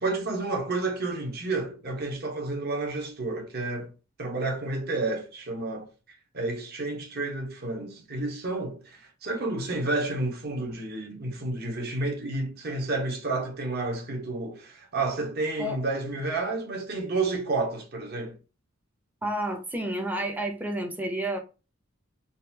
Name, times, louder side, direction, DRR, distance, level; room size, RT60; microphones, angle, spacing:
voice 1, 0.0-3.9 4.2-18.4, right 2 dB, 50° right, 1.0 m, -30 dB
voice 2, 19.2-21.4, right 1 dB, 10° right, 0.6 m, -30 dB
3.9 x 2.3 x 2.7 m
head